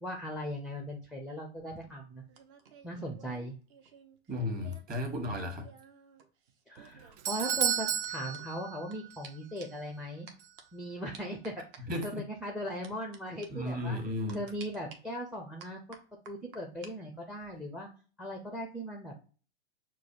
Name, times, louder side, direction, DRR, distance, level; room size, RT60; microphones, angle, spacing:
voice 1, 0.0-2.2 2.8-3.6 6.7-10.3 10.7-11.6 12.0-14.0 14.3-15.8 16.3-17.9 18.2-19.2, equal, ahead, 0.4 m, -39 dB
sound 1, 1.6-5.0 5.2-9.0 9.2-9.3 9.6-9.9 10.3-10.6 11.1-12.1 12.8-13.2 13.4-13.5 14.3-15.0 15.6-16.9 17.2-17.6, right 5 dB, 50° right, 0.9 m, -54 dB
voice 2, 4.3-5.7 11.9-12.2 13.5-14.4, left 1 dB, 25° right, 1.2 m, -34 dB
Doorbell, 6.8-9.3 9.6-9.7 10.4-10.5, right 10 dB, 75° right, 0.5 m, -33 dB
6.0 x 2.2 x 2.5 m
hypercardioid pair, 110°, 34 cm